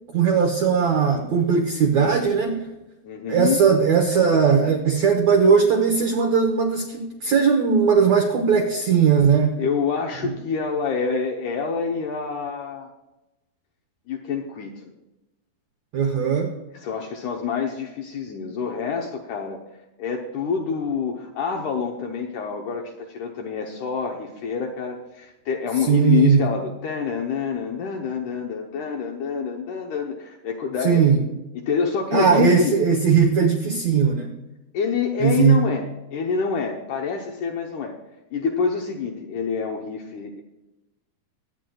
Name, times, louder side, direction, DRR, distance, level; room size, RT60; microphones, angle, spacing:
voice 1, 0.1-2.7 3.3-9.6 10.2-10.3 15.9-16.5 25.9-26.4 30.8-31.2 32.1-34.3 35.2-35.6, right 6 dB, 75° right, 3 dB, 1.6 m, -19 dB
voice 2, 3.0-3.6 9.6-12.9 14.1-14.9 16.7-19.6 20.0-31.0 31.5-32.8 34.7-37.9 38.3-40.4, left 6 dB, 75° left, 1 dB, 1.9 m, -27 dB
23.5 x 9.2 x 2.3 m, 0.97 s
omnidirectional pair, 4.5 m